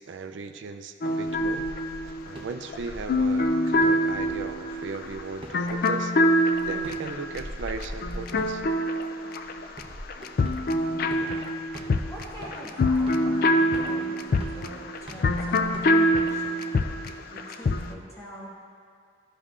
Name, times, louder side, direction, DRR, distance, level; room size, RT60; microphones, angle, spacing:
voice 1, 0.0-1.7 2.2-6.4 6.7-8.6, right 4 dB, 80° right, 8 dB, 0.4 m, -37 dB
sound 1, 1.0-9.8 10.1-17.9, left 1 dB, 50° left, 0.3 m, -25 dB
sound 2, 1.3-16.2, equal, 30° right, 0.8 m, -43 dB
voice 2, 10.8-11.6 12.1-16.6 17.3-18.5, right 1 dB, 15° left, -7 dB, 1.5 m, -43 dB
12.0 x 5.4 x 2.5 m, 2.1 s
head